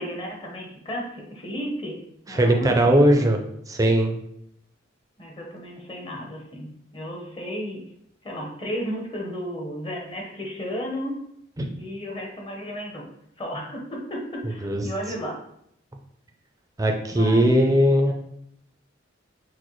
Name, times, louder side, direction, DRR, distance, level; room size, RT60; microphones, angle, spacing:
voice 1, 0.0-2.0 2.3-3.3 5.2-7.8 8.2-11.2 11.8-13.1 13.4-15.4 17.1-17.8, equal, 25° left, -1 dB, 0.9 m, -33 dB
voice 2, 2.3-3.4 3.7-4.1 11.6-11.7 14.6-14.8 16.8-18.1, right 1 dB, 15° right, 3 dB, 0.5 m, -19 dB
6.1 x 2.2 x 3.1 m, 0.73 s
head